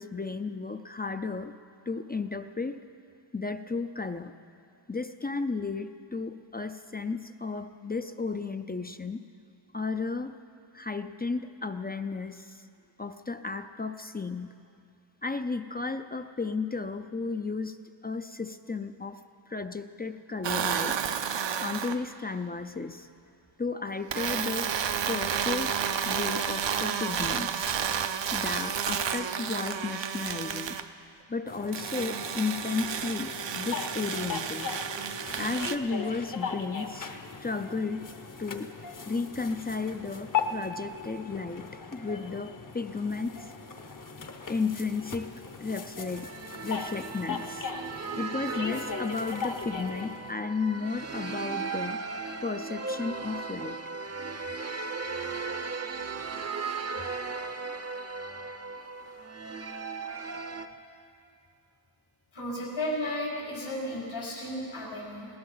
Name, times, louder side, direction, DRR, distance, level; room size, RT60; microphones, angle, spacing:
voice 1, 0.0-1.5 1.9-2.9 3.3-4.3 4.9-9.2 9.7-10.4 10.7-12.6 13.0-14.5 15.2-17.8 18.0-21.0 21.6-23.1 23.6-24.7 25.1-25.8 26.1-27.8 28.3-30.8 31.3-34.7 35.4-37.1 37.4-38.1 38.4-38.7 39.1-43.5 44.5-46.3 46.6-47.7 48.2-52.0 52.4-53.8 56.2-56.3, left 4 dB, 20° left, 9 dB, 0.4 m, -33 dB
sound 1, 20.4-22.0 24.1-30.9 31.7-35.7, right 7 dB, 65° right, 0.7 m, -31 dB
sound 2, 31.5-50.3, left 6 dB, 45° left, 0.9 m, -38 dB
sound 3, 46.1-60.7, right 4 dB, 35° right, 0.7 m, -37 dB
voice 2, 62.3-65.3, left 1 dB, 85° left, -7 dB, 4.7 m, -34 dB
20.0 x 17.5 x 4.0 m, 2.5 s
wide cardioid pair, 105°, 46 cm